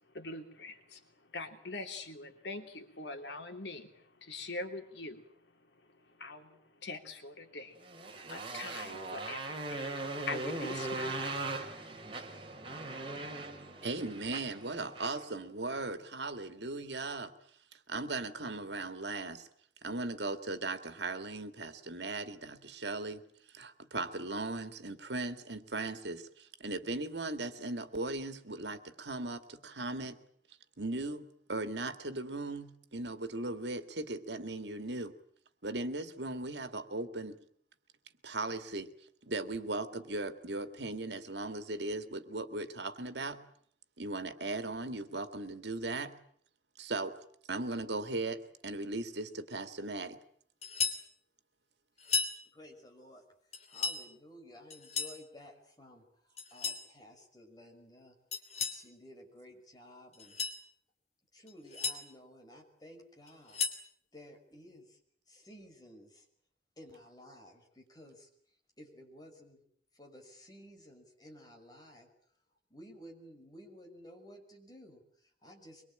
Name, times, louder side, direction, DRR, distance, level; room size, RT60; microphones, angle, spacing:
voice 1, 0.1-1.0 1.3-3.9 4.2-5.2 6.2-7.8 8.1-11.4 11.7-11.8 12.3-12.7 13.1-13.4, left 3 dB, 85° left, 6 dB, 3.2 m, -43 dB
Motorcycle, 7.8-15.2, right 2 dB, 30° right, 3.6 m, -39 dB
voice 2, 13.8-17.3 17.9-19.5 19.8-23.2 23.5-30.2 30.8-35.1 35.6-37.4 38.2-38.9 39.2-43.4 44.0-46.1 46.8-47.1 47.5-50.2, right 2 dB, 80° right, 9 dB, 2.1 m, -38 dB
sound 1, 50.6-51.0 52.0-52.4 53.5-54.0 54.7-55.2 56.4-56.8 58.3-58.8 60.1-60.6 61.5-62.0 63.3-63.8, left 5 dB, 40° left, 3.0 m, -34 dB
voice 3, 52.5-53.2 53.7-58.2 58.7-60.4 61.3-63.7 64.1-65.0 65.3-66.3 66.8-68.3 68.8-69.6 69.9-72.1 72.7-75.9, equal, 25° left, 2 dB, 5.9 m, -54 dB
24.0 x 23.0 x 8.9 m, 0.63 s
head